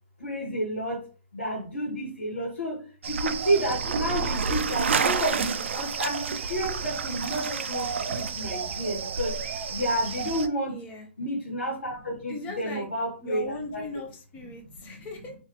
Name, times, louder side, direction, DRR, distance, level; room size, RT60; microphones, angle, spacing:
voice 1, 0.2-1.0 1.3-2.8 3.1-9.3 9.7-10.8 11.2-13.4 13.7-13.8, right 1 dB, 90° left, -3 dB, 1.6 m, -30 dB
sound 1, 3.0-10.5, right 5 dB, 65° right, 0.4 m, -29 dB
voice 2, 10.7-11.1 12.3-12.9 13.2-15.4, left 2 dB, 25° left, 4 dB, 0.7 m, -38 dB
2.9 x 2.8 x 3.0 m, 0.38 s
figure-of-eight pair, 130°, 7 cm